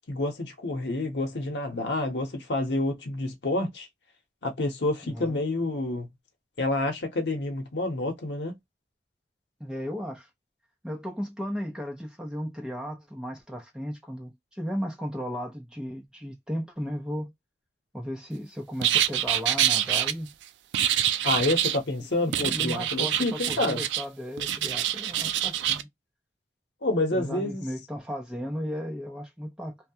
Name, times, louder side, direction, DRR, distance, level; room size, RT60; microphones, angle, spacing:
voice 1, 0.1-3.9 4.4-6.1 6.6-8.5 21.2-23.8 26.8-27.6, left 2 dB, 85° left, 0.8 m, -28 dB
voice 2, 5.1-5.4 9.6-10.3 10.8-17.3 17.9-20.3 22.2-25.9 27.1-29.8, equal, 5° right, 0.6 m, -35 dB
sound 1, 18.8-20.1 20.7-21.8 22.3-24.0 24.4-25.8, right 11 dB, 90° right, 0.3 m, -26 dB
2.3 x 2.2 x 2.7 m
head